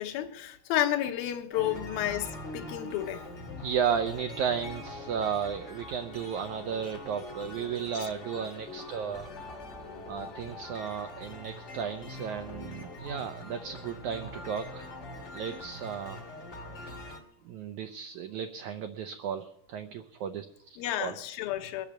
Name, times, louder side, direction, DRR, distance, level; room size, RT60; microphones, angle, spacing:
voice 1, 0.0-3.7 8.0-8.1 20.8-21.9, left 12 dB, 75° left, 2.8 m, -32 dB
sound 1, 1.5-17.2, left 1 dB, 40° left, 0.9 m, -43 dB
voice 2, 3.6-9.3 10.1-14.9 15.3-16.2 17.4-21.1, right 7 dB, 80° right, 1.7 m, -34 dB
21.5 x 8.6 x 7.4 m
omnidirectional pair, 4.4 m